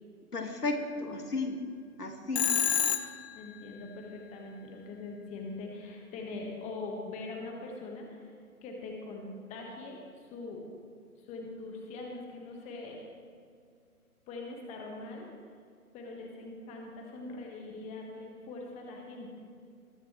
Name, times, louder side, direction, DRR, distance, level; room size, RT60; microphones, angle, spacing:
voice 1, 0.3-1.6 2.0-2.5, left 2 dB, 85° left, 4 dB, 2.0 m, -33 dB
Telephone, 2.4-3.4, left 9 dB, 45° left, 0.8 m, -28 dB
voice 2, 3.3-8.2 8.6-10.0 10.3-10.6 11.3-13.0 14.3-15.3 15.9-19.3, left 3 dB, 15° left, 1 dB, 1.5 m, -42 dB
21.0 x 9.9 x 3.2 m, 2.2 s
figure-of-eight pair, 135°, 45 cm